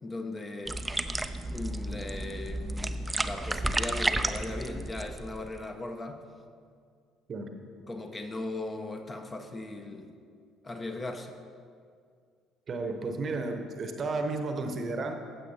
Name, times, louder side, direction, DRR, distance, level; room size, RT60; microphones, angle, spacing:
voice 1, 0.0-0.8 1.5-6.2 7.9-10.1 10.6-11.4, left 2 dB, 25° left, 5 dB, 0.7 m, -38 dB
sound 1, 0.7-5.7, right 1 dB, 15° right, 0.4 m, -32 dB
voice 2, 12.7-15.1, right 3 dB, 40° right, 6 dB, 0.8 m, -33 dB
14.5 x 7.5 x 2.8 m, 2.2 s
figure-of-eight pair, 55°, 0 cm